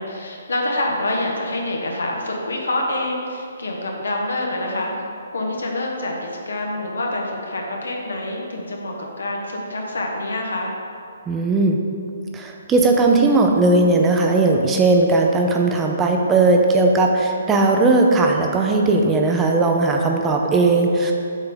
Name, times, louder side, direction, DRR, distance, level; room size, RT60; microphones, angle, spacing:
voice 1, 0.0-5.1 5.3-10.7, left 1 dB, 80° left, 0 dB, 1.3 m, -26 dB
voice 2, 11.3-11.8 12.3-21.1, right 3 dB, 15° right, 2 dB, 0.6 m, -17 dB
7.1 x 3.8 x 5.6 m, 2.5 s
hypercardioid pair, 145°, 0 cm